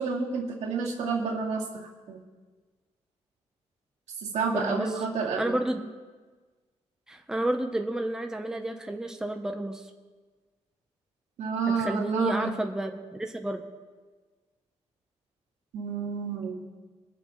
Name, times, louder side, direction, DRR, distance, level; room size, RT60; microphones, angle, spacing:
voice 1, 0.0-2.2 4.2-5.6 11.4-12.6 15.7-16.6, right 5 dB, 90° right, -1 dB, 2.1 m, -30 dB
voice 2, 4.5-4.9 5.4-5.8 7.1-9.8 11.7-13.6, right 1 dB, 5° right, 4 dB, 0.9 m, -31 dB
23.0 x 7.9 x 3.2 m, 1.4 s
cardioid pair, 125°, 12 cm